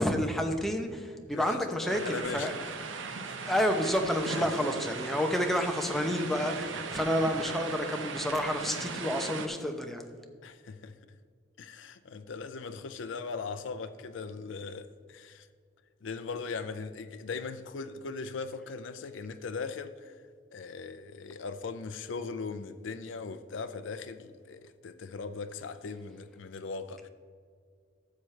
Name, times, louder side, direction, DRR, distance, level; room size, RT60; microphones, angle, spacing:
voice 1, 0.0-2.5 3.5-10.1, equal, ahead, 0.8 m, -29 dB
voice 2, 1.3-2.6 3.2-3.4 4.3-4.4 7.2-7.5 10.4-10.9 11.6-15.5 16.0-20.1 20.5-27.1, left 4 dB, 70° left, 0.5 m, -39 dB
sound 1, 1.9-9.5, right 4 dB, 75° right, 0.8 m, -38 dB
13.0 x 7.5 x 3.3 m
head